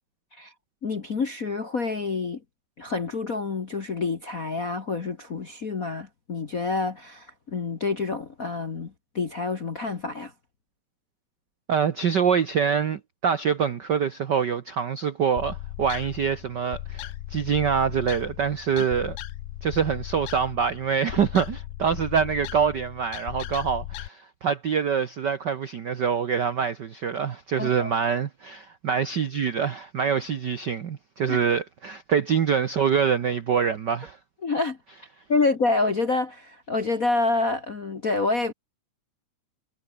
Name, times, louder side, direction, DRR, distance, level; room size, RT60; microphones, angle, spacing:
voice 1, 0.8-2.4 2.8-10.3 27.6-28.0 31.3-31.4 34.4-34.8 35.3-38.5, left 3 dB, 40° left, 1.2 m, -27 dB
voice 2, 11.7-19.2 19.6-34.2, right 7 dB, 85° right, 0.9 m, -25 dB
sound 1, 15.4-24.1, left 14 dB, 85° left, 2.7 m, -37 dB
omnidirectional pair, 3.6 m